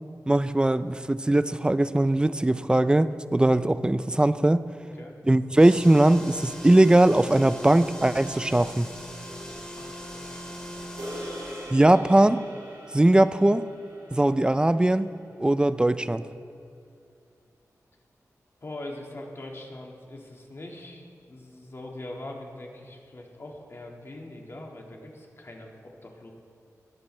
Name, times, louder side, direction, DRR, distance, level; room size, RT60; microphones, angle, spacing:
voice 1, 0.3-4.6 5.3-8.9 11.7-12.4 12.9-13.6 14.1-15.1 15.4-16.2, right 1 dB, 15° right, 14 dB, 0.4 m, -20 dB
Drone Pad, 5.6-11.8, equal, 15° left, 2.5 m, -40 dB
voice 2, 9.2-10.6 18.6-26.3, left 1 dB, 45° left, 0 dB, 1.9 m, -42 dB
sound 1, 11.0-15.4, equal, 90° right, 3.4 m, -42 dB
19.5 x 13.5 x 3.3 m, 2.3 s
wide cardioid pair, 110°, 6 cm